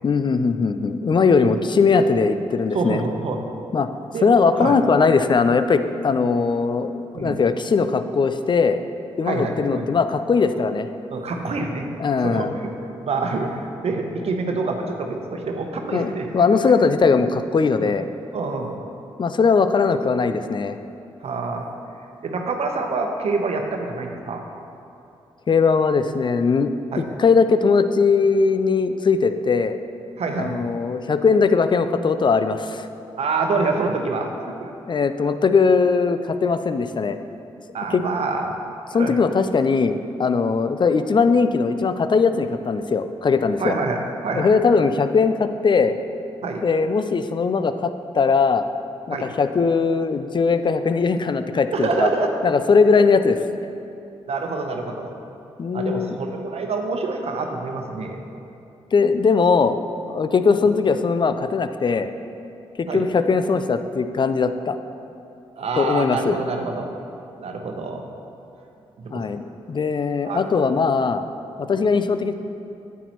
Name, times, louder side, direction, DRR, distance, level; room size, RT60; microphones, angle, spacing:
voice 1, 0.0-3.0 3.7-3.9 4.2-8.8 9.2-10.9 12.0-12.5 15.9-18.1 19.2-20.8 25.5-29.8 30.4-32.9 34.9-37.2 37.9-38.0 38.9-43.8 44.3-45.9 46.6-48.7 49.1-52.1 52.4-53.4 55.6-56.2 58.9-59.8 60.1-62.1 62.9-64.8 65.8-66.4 69.1-71.2 71.6-72.3, left 5 dB, 40° left, 10 dB, 0.5 m, -20 dB
voice 2, 2.7-3.5 4.1-4.3 4.6-4.8 7.1-7.4 9.2-9.8 11.1-11.9 12.2-12.7 13.0-16.5 17.7-17.9 18.3-18.8 21.2-21.7 22.2-24.4 26.9-27.1 30.2-30.7 33.2-34.7 37.7-38.5 38.9-39.2 43.6-44.5 46.4-46.6 49.1-49.3 51.7-52.3 54.3-55.1 55.7-58.2 62.9-63.1 65.6-66.9 67.4-68.1 69.0-69.3 70.2-70.4 71.6-71.7, right 3 dB, 60° right, 3 dB, 0.9 m, -26 dB
8.9 x 8.2 x 3.1 m, 2.7 s
hypercardioid pair, 40°, 12 cm